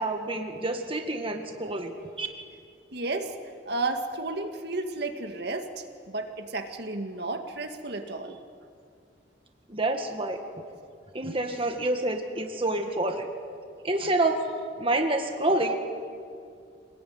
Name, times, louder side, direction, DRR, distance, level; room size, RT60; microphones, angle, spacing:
voice 1, 0.0-2.3 9.7-10.4 11.1-13.3 13.8-14.4 14.8-15.7, right 2 dB, 30° right, 4 dB, 1.8 m, -28 dB
voice 2, 2.9-3.3 3.7-8.4, right 2 dB, 60° right, 5 dB, 2.0 m, -32 dB
27.5 x 20.0 x 9.5 m, 2.3 s
head